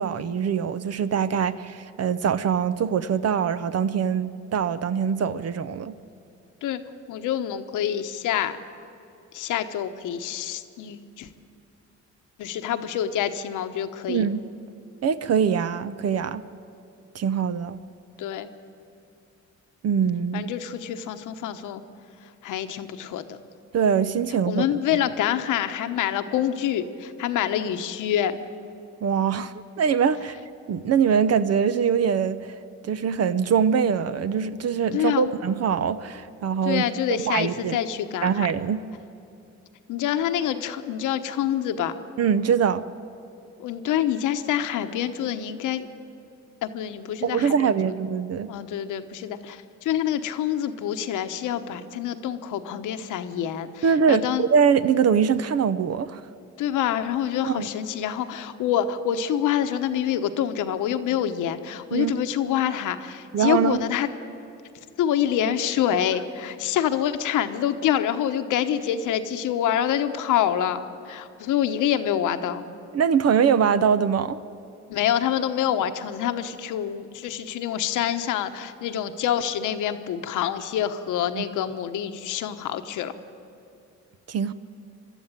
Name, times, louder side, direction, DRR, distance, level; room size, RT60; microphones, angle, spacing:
voice 1, 0.0-5.9 14.1-14.4 15.0-16.4 17.1-17.8 19.8-20.5 23.7-24.6 29.0-30.4 30.7-32.5 32.8-36.8 37.3-37.8 38.2-38.8 42.2-42.8 47.2-48.5 53.8-56.2 57.4-57.7 61.9-62.2 63.3-63.8 72.9-74.4 81.3-81.4 84.3-84.5, right 7 dB, 55° right, 13 dB, 0.7 m, -23 dB
voice 2, 7.1-8.6 9.3-11.3 12.4-14.2 18.2-18.5 20.3-21.8 22.4-23.4 24.5-28.4 34.9-35.3 36.6-38.5 39.9-42.0 43.6-45.9 46.6-48.0 48.5-54.5 56.6-64.1 65.0-72.6 74.9-83.1, left 10 dB, 85° left, 9 dB, 1.2 m, -26 dB
23.5 x 12.5 x 9.1 m, 2.7 s
cardioid pair, 90°, 30 cm